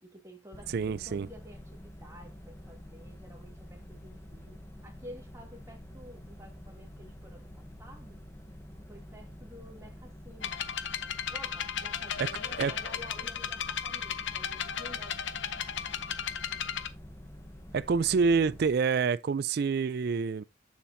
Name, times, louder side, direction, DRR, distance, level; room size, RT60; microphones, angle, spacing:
voice 1, 0.0-8.2 8.9-10.6 11.3-15.4, equal, 15° right, 1.7 m, -51 dB
sound 1, 0.5-18.7, equal, 15° left, 0.9 m, -48 dB
voice 2, 0.7-1.3 12.2-12.3 12.6-12.7 17.7-20.4, right 5 dB, 55° right, 0.3 m, -27 dB
sound 2, 10.4-16.9, left 8 dB, 70° left, 0.7 m, -35 dB
7.3 x 7.0 x 2.7 m
head